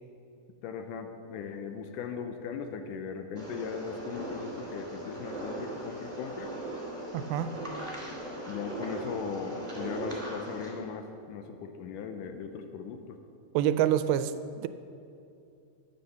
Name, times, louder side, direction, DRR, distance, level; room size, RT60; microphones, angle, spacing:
voice 1, 0.6-6.5 8.5-13.2, left 6 dB, 80° left, 7 dB, 2.0 m, -38 dB
sound 1, 3.4-10.7, right 1 dB, 10° right, 2.2 m, -39 dB
voice 2, 7.1-7.5 13.5-14.7, right 10 dB, 85° right, 12 dB, 2.4 m, -27 dB
12.0 x 8.3 x 6.9 m, 2.6 s
omnidirectional pair, 4.3 m